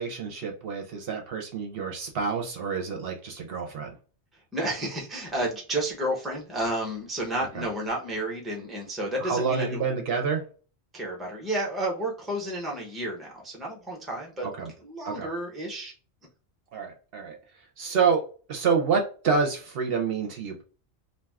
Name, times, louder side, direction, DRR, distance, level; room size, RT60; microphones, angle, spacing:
voice 1, 0.0-3.9 7.5-7.7 9.2-10.4 14.4-14.7 15.0-15.3 16.7-17.4 17.8-18.2 18.5-20.6, right 5 dB, 65° right, 2 dB, 0.8 m, -28 dB
voice 2, 4.5-9.8 10.9-14.5 14.8-15.9, right 1 dB, ahead, -1 dB, 0.7 m, -31 dB
2.5 x 2.3 x 3.4 m, 0.38 s
omnidirectional pair, 1.1 m